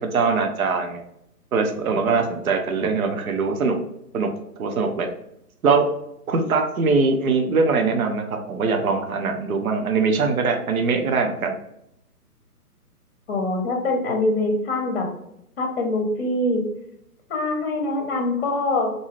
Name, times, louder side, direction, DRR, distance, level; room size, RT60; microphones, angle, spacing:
voice 1, 0.1-1.0 1.5-3.8 4.1-4.3 4.6-5.1 5.6-5.9 6.3-11.6, right 4 dB, 60° right, 4 dB, 0.7 m, -22 dB
voice 2, 13.3-15.1 15.6-16.6 17.3-18.9, left 2 dB, 40° left, 3 dB, 0.7 m, -23 dB
2.7 x 2.3 x 3.1 m, 0.78 s
hypercardioid pair, 155°, 47 cm